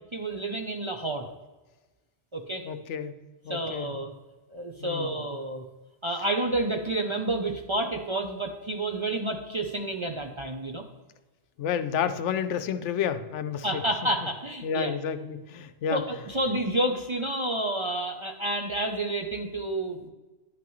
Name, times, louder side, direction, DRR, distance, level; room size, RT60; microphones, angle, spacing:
voice 1, 0.1-1.3 2.3-2.6 3.5-4.1 4.5-5.6 6.0-10.8 13.6-14.9 15.9-20.1, right 1 dB, 35° right, 3 dB, 0.5 m, -29 dB
voice 2, 2.6-3.1 3.4-3.9 4.8-5.2 11.6-13.8 14.6-16.0, left 8 dB, 85° left, 10 dB, 0.9 m, -30 dB
10.5 x 5.9 x 3.1 m, 1.2 s
omnidirectional pair, 1.2 m